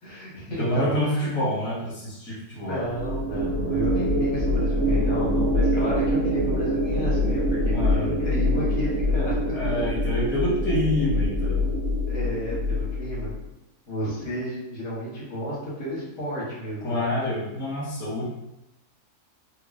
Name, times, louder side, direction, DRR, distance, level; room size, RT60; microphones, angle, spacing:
voice 1, 0.0-1.3 2.5-9.4 12.1-13.3 13.9-17.1, equal, 80° left, -7 dB, 1.8 m, -32 dB
voice 2, 0.6-2.8 7.7-8.1 9.5-11.7 16.8-18.3, left 1 dB, 10° left, -8 dB, 0.8 m, -27 dB
sound 1, 2.9-13.4, left 1 dB, 60° right, 0.7 m, -24 dB
3.6 x 2.9 x 2.4 m, 0.91 s
omnidirectional pair, 1.7 m